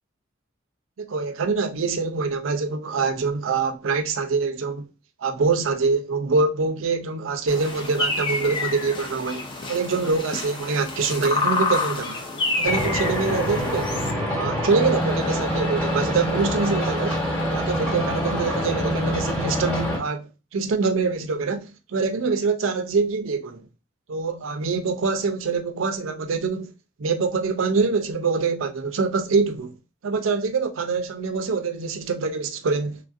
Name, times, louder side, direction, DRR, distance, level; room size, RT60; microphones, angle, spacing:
voice 1, 1.0-4.9 5.2-12.2 12.6-14.0 14.3-17.2 17.5-23.6 24.1-26.7 27.0-29.8 30.0-33.0, right 4 dB, 85° right, 0.5 m, -25 dB
sound 1, 7.5-14.1, left 3 dB, 25° left, 0.5 m, -28 dB
sound 2, 12.6-20.0, equal, 5° left, 1.0 m, -25 dB
3.1 x 2.4 x 2.5 m
head